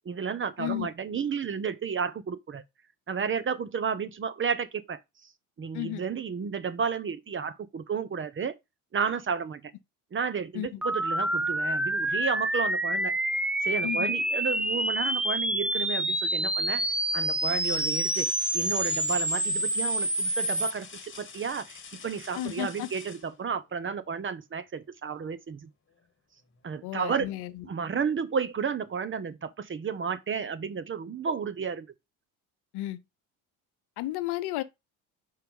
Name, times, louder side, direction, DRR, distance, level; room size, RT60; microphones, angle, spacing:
voice 1, 0.0-2.6 3.1-5.0 5.6-8.5 8.9-9.6 10.1-13.1 13.6-16.8 17.1-25.7 26.6-27.3 27.6-31.9, right 6 dB, 30° right, 0.8 m, -32 dB
sound 1, 10.8-20.7, right 1 dB, 5° right, 0.4 m, -28 dB
sound 2, 15.7-16.2 16.7-16.8 17.4-24.1 25.9-26.0 26.5-27.5 28.8-28.9, left 6 dB, 25° left, 1.5 m, -47 dB
voice 2, 22.3-22.9 26.8-27.7 32.7-33.0 34.0-34.6, left 16 dB, 65° left, 0.8 m, -33 dB
4.8 x 4.6 x 5.4 m
supercardioid pair, 75°, 43 cm